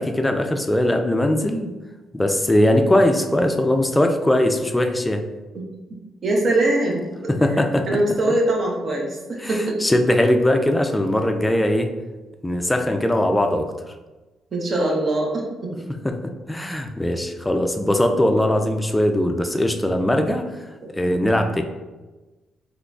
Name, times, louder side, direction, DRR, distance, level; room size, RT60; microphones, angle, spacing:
voice 1, 0.0-1.7 2.1-5.2 7.3-8.0 9.4-11.9 12.4-13.7 16.0-16.2 16.5-20.4 20.9-21.6, left 1 dB, 10° left, 5 dB, 0.4 m, -20 dB
voice 2, 6.2-7.3 7.9-9.8 14.5-15.7 20.1-20.2, right 1 dB, 45° right, -1 dB, 0.8 m, -22 dB
3.8 x 2.9 x 2.3 m, 1.2 s
cardioid pair, 90°, 0 cm